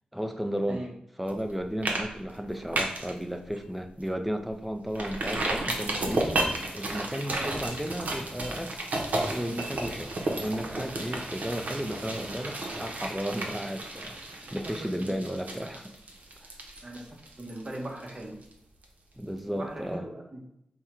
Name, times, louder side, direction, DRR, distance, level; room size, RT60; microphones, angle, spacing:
voice 1, 0.1-0.9 1.2-6.4 6.7-8.9 9.3-15.9 16.4-16.5 19.2-20.1, equal, ahead, 5 dB, 0.4 m, -34 dB
sound 1, 1.3-1.5 1.8-2.0 2.3-3.1 3.5-3.6 4.0-4.1 4.9-18.5 18.8-18.9, right 2 dB, 70° right, 0.7 m, -33 dB
voice 2, 7.3-7.7 14.8-15.7 16.8-17.1 17.4-18.3 19.5-20.5, right 1 dB, 35° right, 1 dB, 0.9 m, -39 dB
3.6 x 2.2 x 4.3 m, 0.79 s
cardioid pair, 60°, 3 cm